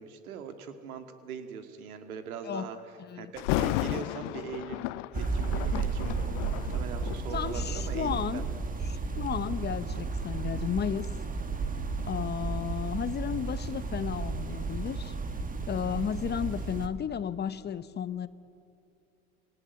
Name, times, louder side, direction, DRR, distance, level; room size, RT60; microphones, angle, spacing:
voice 1, 0.0-8.4, right 7 dB, 80° right, 7 dB, 2.3 m, -41 dB
Thunder, 3.4-8.3 9.0-9.2 9.9-12.7 13.0-13.1, left 20 dB, 50° left, 0.6 m, -35 dB
sound 1, 5.1-16.9, right 4 dB, 20° right, 1.7 m, -33 dB
voice 2, 7.3-8.5 8.9-11.1 12.1-15.1 15.7-18.3, left 8 dB, 25° left, 14 dB, 0.9 m, -33 dB
28.0 x 18.0 x 9.4 m, 2.6 s
hypercardioid pair, 95°, 43 cm